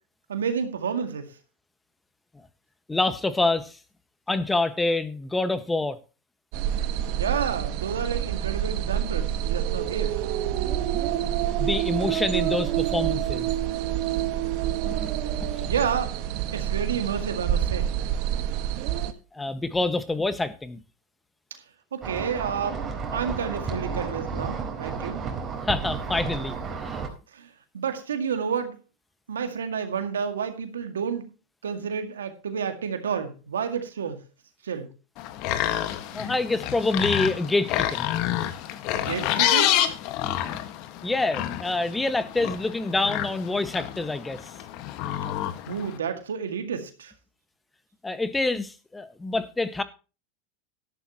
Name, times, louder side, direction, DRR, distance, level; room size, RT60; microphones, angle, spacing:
voice 1, 0.3-1.3 7.1-10.2 15.6-16.1 16.5-17.9 21.9-22.8 23.1-25.2 27.3-27.5 27.7-28.7 29.3-31.3 31.6-34.2 34.6-34.9 38.9-39.7 45.7-47.1, right 7 dB, 85° right, 2.0 m, -30 dB
voice 2, 2.9-3.8 4.3-6.0 11.1-11.3 11.6-13.5 14.8-15.1 15.4-15.6 18.9-19.0 19.3-20.8 25.7-27.0 36.1-38.1 40.2-40.4 41.0-44.5 48.0-49.8, left 2 dB, 10° left, 1.5 m, -27 dB
sound 1, 6.5-19.1, right 11 dB, 55° right, 1.4 m, -27 dB
sound 2, 22.0-27.1, right 5 dB, 30° right, 4.1 m, -32 dB
sound 3, 35.2-46.0, left 12 dB, 55° left, 1.6 m, -28 dB
13.0 x 12.0 x 3.0 m
hypercardioid pair, 95°, 0 cm